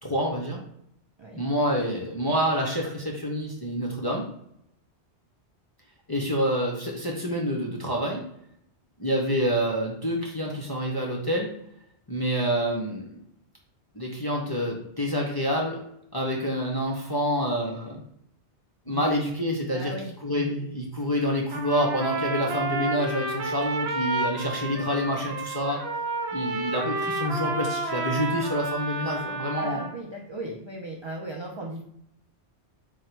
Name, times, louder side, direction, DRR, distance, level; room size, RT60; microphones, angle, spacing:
voice 1, 0.0-0.6 1.3-4.2 6.1-8.2 9.0-11.5 12.1-13.2 13.9-15.8 16.1-18.0 18.9-19.9 20.2-25.8 26.3-29.8, equal, 30° left, -3 dB, 0.5 m, -27 dB
voice 2, 19.7-20.5 29.5-31.8, right 1 dB, 45° right, -1 dB, 0.3 m, -37 dB
Trumpet, 21.5-29.9, right 3 dB, 70° right, 0.9 m, -31 dB
3.8 x 2.1 x 4.4 m, 0.73 s
omnidirectional pair, 1.2 m